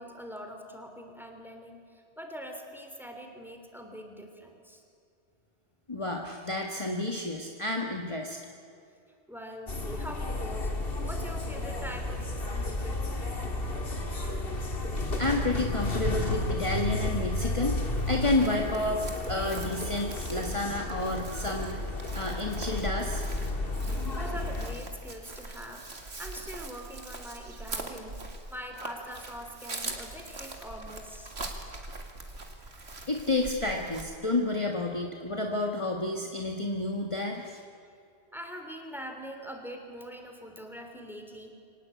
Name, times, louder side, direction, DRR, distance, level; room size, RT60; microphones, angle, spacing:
voice 1, 0.0-4.8 9.3-10.7 11.0-13.2 24.1-25.8 26.2-28.2 28.5-31.3 38.3-41.5, equal, ahead, 4 dB, 3.1 m, -43 dB
voice 2, 5.9-8.4 15.2-19.0 19.3-23.3 33.1-37.6, left 2 dB, 30° left, 1 dB, 1.7 m, -30 dB
sound 1, 9.7-24.8, left 2 dB, 55° left, 2.2 m, -32 dB
Chirp tweet, 18.0-34.0, right 2 dB, 70° right, 2.5 m, -43 dB
24.5 x 18.5 x 8.4 m, 2.5 s
omnidirectional pair, 1.1 m